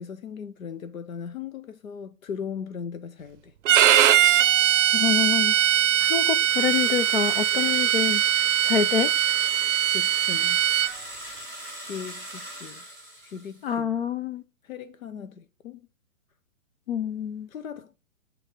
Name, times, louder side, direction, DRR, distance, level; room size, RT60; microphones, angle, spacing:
voice 1, 0.0-3.5 9.9-10.6 11.8-12.9 13.2-14.0 14.6-15.9 17.5-18.0, left 7 dB, 85° left, 0.8 m, -38 dB
Bowed string instrument, 3.7-10.9, right 11 dB, 65° right, 0.5 m, -21 dB
voice 2, 4.9-5.5 6.0-8.2 8.6-9.1 13.6-14.4 16.9-17.5, left 8 dB, 45° left, 0.5 m, -26 dB
sound 1, 6.3-13.7, right 1 dB, 5° left, 4.1 m, -40 dB
11.0 x 3.8 x 4.4 m
hypercardioid pair, 150°, 40 cm